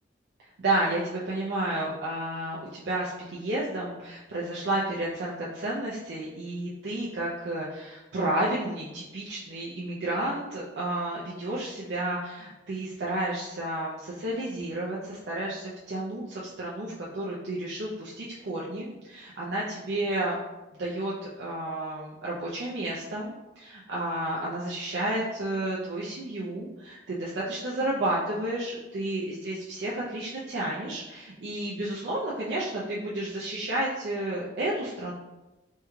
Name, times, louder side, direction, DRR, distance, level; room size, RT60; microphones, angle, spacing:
voice 1, 0.6-20.4 20.8-35.1, right 1 dB, 65° right, -6 dB, 0.5 m, -31 dB
3.5 x 2.2 x 3.0 m, 1.0 s
head